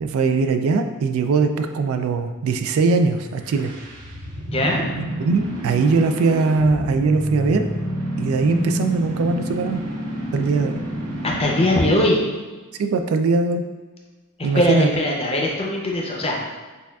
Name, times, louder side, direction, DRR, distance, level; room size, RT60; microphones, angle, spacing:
voice 1, 0.0-3.7 5.2-7.7 8.2-9.8 10.3-10.8 12.8-13.6 14.4-14.9, right 4 dB, 65° right, 9 dB, 0.3 m, -20 dB
sound 1, 3.3-11.9, right 1 dB, 90° right, 0.8 m, -29 dB
voice 2, 4.5-4.8 11.2-12.2 14.5-16.4, left 1 dB, 25° left, -1 dB, 0.6 m, -20 dB
6.6 x 2.4 x 2.3 m, 1.3 s
head